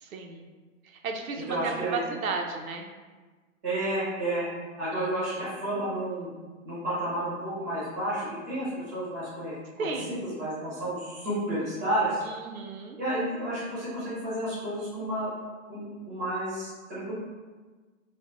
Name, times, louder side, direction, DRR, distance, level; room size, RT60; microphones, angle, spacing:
voice 1, 0.0-0.5 1.0-2.9 4.9-5.4 9.8-10.3 12.2-13.0, right 4 dB, 85° right, 3 dB, 0.7 m, -34 dB
voice 2, 1.5-2.0 3.6-4.5 4.8-6.3 6.6-12.2 13.0-15.3 15.7-17.1, right 1 dB, 15° right, -9 dB, 0.5 m, -31 dB
3.3 x 2.0 x 3.9 m, 1.4 s
hypercardioid pair, 170°, 41 cm